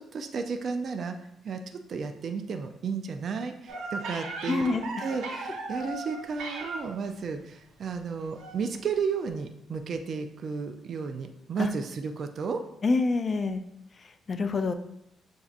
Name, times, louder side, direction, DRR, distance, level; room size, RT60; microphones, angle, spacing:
voice 1, 0.1-1.2 1.4-4.7 5.0-12.6, right 5 dB, 55° right, 6 dB, 0.4 m, -33 dB
sound 1, 3.7-7.1 8.4-8.6 8.9-9.0, right 2 dB, 85° right, 0.7 m, -37 dB
voice 2, 4.5-4.9 11.6-11.7 12.8-13.6 14.0-14.7, left 3 dB, 40° left, 9 dB, 0.3 m, -27 dB
6.9 x 2.6 x 2.4 m, 0.78 s
cardioid pair, 90°, 0 cm